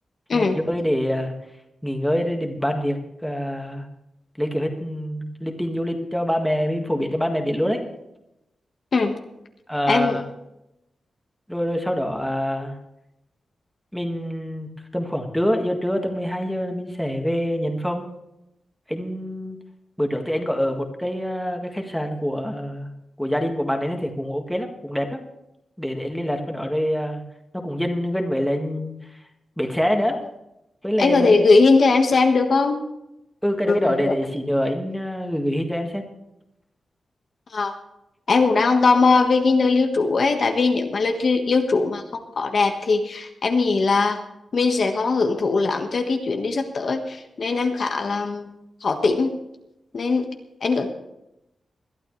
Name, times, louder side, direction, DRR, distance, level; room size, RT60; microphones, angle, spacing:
voice 1, 0.3-1.3 1.8-3.9 4.4-7.8 9.7-10.2 11.5-12.8 13.9-18.1 18.9-19.6 20.0-22.9 23.2-25.2 25.8-27.2 27.5-28.9 29.6-30.2 30.8-31.3 33.4-36.0, equal, ahead, 3 dB, 1.8 m, -25 dB
voice 2, 9.9-10.2 31.0-32.8 33.7-34.1 37.5-37.7 38.3-42.0 42.4-44.2 44.5-48.5 48.8-49.3 49.9-50.3 50.6-50.9, left 4 dB, 50° left, 4 dB, 1.5 m, -20 dB
21.5 x 12.5 x 3.2 m, 0.86 s
wide cardioid pair, 145°, 0 cm